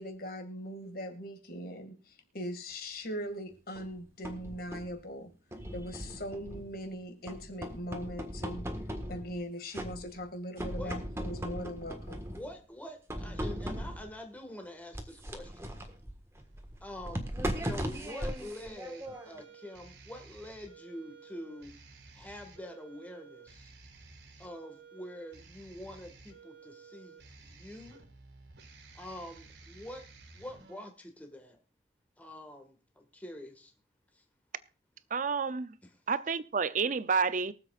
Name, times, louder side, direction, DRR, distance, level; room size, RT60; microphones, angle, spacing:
voice 1, 0.0-5.3 5.7-8.6 9.1-12.2, equal, 55° left, 2.2 m, -40 dB
sound 1, 3.8-5.0 5.5-6.9 7.3-9.4 9.7-10.3 10.6-12.5 13.1-14.2 14.9-19.4, equal, 15° right, 1.6 m, -38 dB
voice 2, 12.4-15.8 16.8-17.3 17.6-21.7 22.1-23.7 24.4-28.0 29.0-30.1 30.3-31.6 32.2-33.7 34.1-34.2 35.8-35.9, left 1 dB, 10° left, 1.8 m, -46 dB
sound 2, 16.4-30.9, right 4 dB, 75° right, 1.9 m, -54 dB
voice 3, 35.1-35.7 36.1-37.5, right 5 dB, 45° right, 0.6 m, -29 dB
23.0 x 7.8 x 2.5 m
head